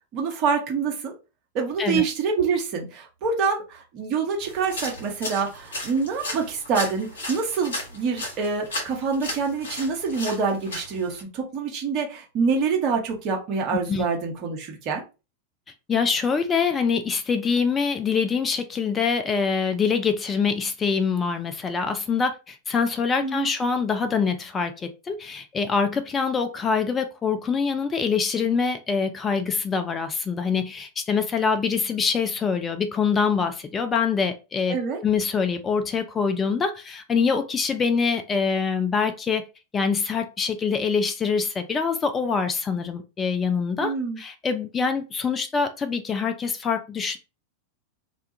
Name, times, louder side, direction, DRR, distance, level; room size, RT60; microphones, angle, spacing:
voice 1, 0.1-1.1 1.5-15.0 23.2-23.5 34.7-35.0 43.8-44.2, right 5 dB, 40° right, 2 dB, 0.8 m, -26 dB
sound 1, 4.4-11.2, left 1 dB, 65° left, 1.0 m, -35 dB
voice 2, 15.9-34.8 35.0-39.4 39.7-47.2, left 5 dB, 20° left, 8 dB, 0.3 m, -24 dB
2.3 x 2.2 x 2.7 m, 0.29 s
figure-of-eight pair, 90°, 0 cm